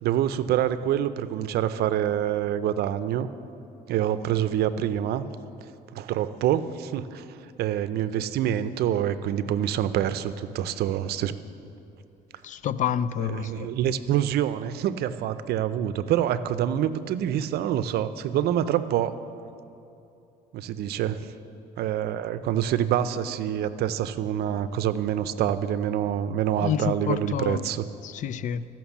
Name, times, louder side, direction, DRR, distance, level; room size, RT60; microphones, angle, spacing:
voice 1, 0.0-3.3 3.9-5.3 5.9-7.2 7.6-11.3 13.3-19.1 20.5-21.3 21.8-27.9, right 10 dB, 70° right, 0.5 m, -26 dB
voice 2, 12.4-13.7 26.6-27.6 28.0-28.6, left 9 dB, 50° left, 0.4 m, -28 dB
14.5 x 5.9 x 7.2 m
cardioid pair, 110°, 17 cm